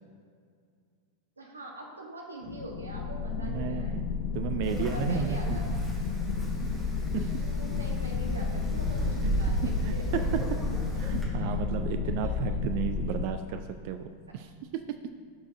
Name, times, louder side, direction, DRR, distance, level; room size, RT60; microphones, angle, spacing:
voice 1, 1.4-4.0 4.6-5.8 7.4-10.3 10.8-11.2 11.5-11.6 11.9-12.6, right 1 dB, 75° right, 1 dB, 1.1 m, -43 dB
sound 1, 2.4-13.3, left 6 dB, 45° left, 0.4 m, -32 dB
voice 2, 3.4-4.1 4.3-5.8 7.1-7.3 9.2-9.3 9.9-10.4 11.0-14.1 14.3-14.5 14.7-14.8, right 9 dB, 45° right, 8 dB, 0.3 m, -33 dB
Wind, 4.6-11.2, right 1 dB, 5° right, 1.8 m, -34 dB
12.0 x 4.6 x 2.6 m, 2.1 s
figure-of-eight pair, 90°, 0 cm